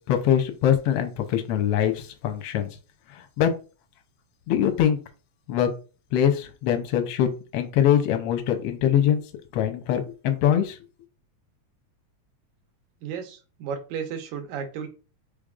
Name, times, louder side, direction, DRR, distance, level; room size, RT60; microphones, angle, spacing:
voice 1, 0.1-2.7 3.1-3.5 4.5-5.0 5.5-5.7 6.1-9.2 9.5-10.8, left 10 dB, 70° left, 6 dB, 1.4 m, -23 dB
voice 2, 13.0-14.9, right 7 dB, 80° right, 6 dB, 2.2 m, -33 dB
5.1 x 3.5 x 2.4 m, 0.34 s
omnidirectional pair, 3.4 m